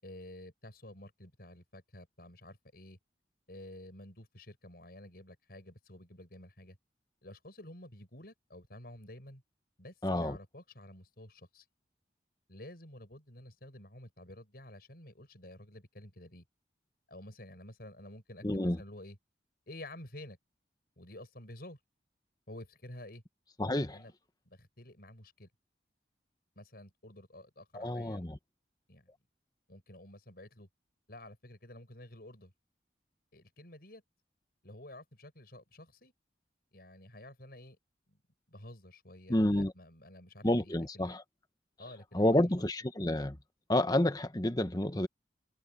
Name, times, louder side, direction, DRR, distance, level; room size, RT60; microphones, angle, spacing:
voice 1, 0.0-3.0 3.5-6.8 7.2-9.4 9.8-11.7 12.5-16.4 17.1-19.2 19.7-20.4 21.0-21.8 22.5-23.2 23.8-24.1 24.5-25.5 26.6-28.3 28.9-29.1 29.7-30.7 31.1-32.5 33.3-34.0 34.6-36.1 36.7-37.8 38.1-38.2 38.5-41.2 41.8-42.5, left 1 dB, 60° left, 7.9 m, -51 dB
voice 2, 10.0-10.4 18.4-18.8 23.6-24.0 27.7-28.4 39.3-39.7 40.4-41.2 42.1-43.4 43.7-45.1, left 1 dB, 20° left, 1.2 m, -29 dB
head